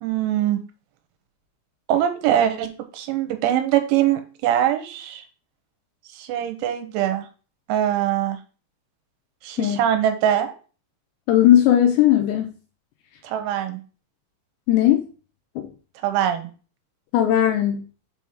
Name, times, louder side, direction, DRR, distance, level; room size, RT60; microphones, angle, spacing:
voice 1, 0.0-0.6 1.9-5.2 6.1-7.3 7.7-8.4 9.4-10.5 13.2-13.8 16.0-16.5, right 11 dB, 80° right, 7 dB, 3.1 m, -22 dB
voice 2, 11.3-12.5 14.7-15.0 15.6-15.7 17.1-17.8, left 12 dB, 80° left, 5 dB, 2.6 m, -17 dB
6.9 x 3.6 x 5.9 m, 0.38 s
omnidirectional pair, 5.7 m